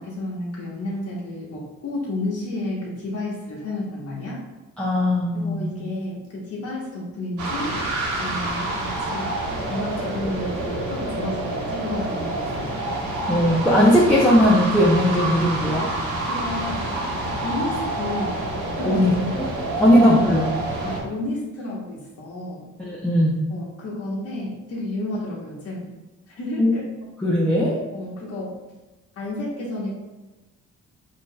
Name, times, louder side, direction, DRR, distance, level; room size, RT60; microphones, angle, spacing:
voice 1, 0.0-4.4 5.3-7.7 8.2-9.3 9.7-12.8 16.3-18.4 18.8-19.1 19.8-20.0 20.8-22.6 23.5-25.9 26.3-26.8 27.9-28.5 29.2-30.0, left 1 dB, 50° left, -5 dB, 1.2 m, -31 dB
voice 2, 4.8-5.7 13.3-15.9 18.8-19.5 19.8-20.6 22.8-23.4 26.6-26.7 27.2-27.8, equal, 5° left, -6 dB, 0.7 m, -18 dB
sound 1, 7.4-21.0, right 2 dB, 75° right, 1.1 m, -27 dB
5.0 x 2.8 x 2.3 m, 1.1 s
cardioid pair, 90°, 30 cm